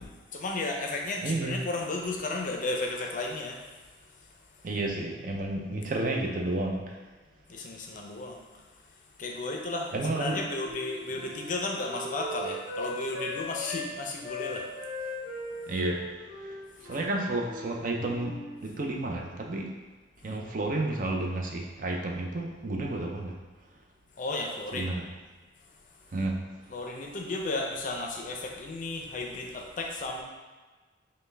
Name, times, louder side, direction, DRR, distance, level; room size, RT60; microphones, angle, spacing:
voice 1, 0.0-3.6 7.5-8.4 9.2-14.7 24.2-24.9 26.7-30.2, left 2 dB, 45° left, 1 dB, 0.5 m, -34 dB
voice 2, 1.2-1.6 4.6-7.0 9.9-10.4 15.7-16.1 16.4-16.5 16.8-19.7 20.2-23.3 24.7-25.1 26.1-26.4, right 2 dB, 45° right, 1 dB, 0.5 m, -31 dB
Wind instrument woodwind instrument, 10.0-13.9 14.2-17.8 18.0-18.6, left 1 dB, 15° right, 0.8 m, -39 dB
5.3 x 2.2 x 3.3 m, 1.3 s
head